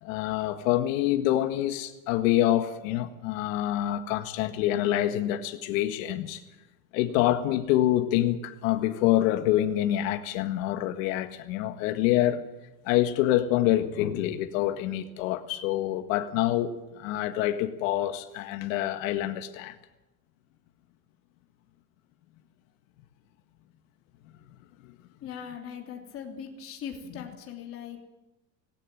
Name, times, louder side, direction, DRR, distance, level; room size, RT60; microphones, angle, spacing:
voice 1, 0.0-6.4 6.9-12.4 12.9-19.8 24.8-24.9, left 13 dB, 75° left, 1.8 m, -26 dB
voice 2, 25.2-28.0, left 7 dB, 35° left, 3.2 m, -40 dB
18.5 x 18.0 x 9.1 m
cardioid pair, 170°, 40 cm